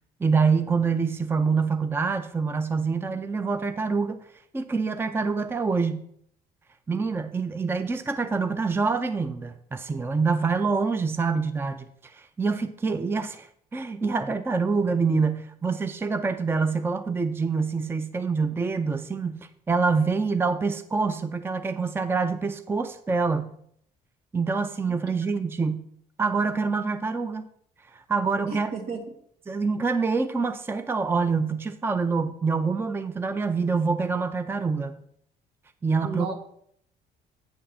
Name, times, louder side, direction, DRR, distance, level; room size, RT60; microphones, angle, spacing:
voice 1, 0.2-4.2 4.5-6.0 6.9-23.5 24.3-25.8 26.2-27.5 27.9-28.7 29.5-35.0 35.8-36.3, right 4 dB, 15° right, 11 dB, 0.5 m, -26 dB
voice 2, 28.5-29.0 36.0-36.3, right 4 dB, 75° right, 5 dB, 1.7 m, -33 dB
8.6 x 3.7 x 6.9 m, 0.68 s
cardioid pair, 110°, 17 cm